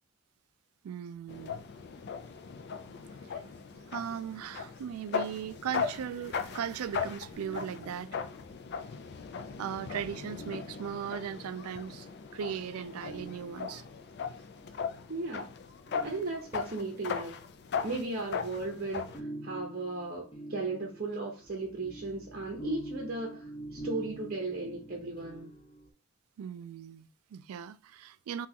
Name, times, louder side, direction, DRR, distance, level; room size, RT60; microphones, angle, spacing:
voice 1, 0.8-1.6 2.9-8.1 9.6-13.8 26.4-28.5, right 8 dB, 75° right, 0.3 m, -38 dB
sound 1, 1.3-19.2, left 6 dB, 50° left, 0.4 m, -38 dB
sound 2, 7.3-8.4 10.3-11.4 13.0-14.1 15.9-16.9 18.6-25.9, right 2 dB, 25° left, 0.9 m, -45 dB
voice 2, 15.1-15.5 16.0-17.4 17.8-25.5, right 3 dB, 45° right, 0.8 m, -36 dB
6.0 x 2.4 x 2.8 m
head